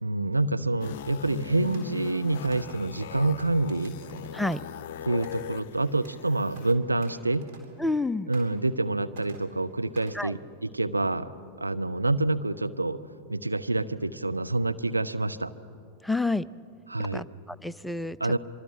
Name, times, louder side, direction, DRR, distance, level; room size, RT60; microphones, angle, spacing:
voice 1, 0.0-4.0 5.0-7.4 8.3-11.3 11.6-13.0 13.3-15.5 16.9-17.2 18.2-18.4, right 2 dB, 85° right, 10 dB, 0.7 m, -27 dB
sound 1, 0.8-6.7, left 11 dB, 55° left, 0.6 m, -40 dB
sound 2, 1.1-8.0 8.3-8.9 9.1-10.2, right 3 dB, 50° right, 3.8 m, -53 dB
voice 2, 7.8-8.3 10.1-10.3 16.0-16.5 17.1-18.2, left 2 dB, 5° left, 15 dB, 0.4 m, -29 dB
24.5 x 24.0 x 6.0 m, 2.4 s
figure-of-eight pair, 90°, 0 cm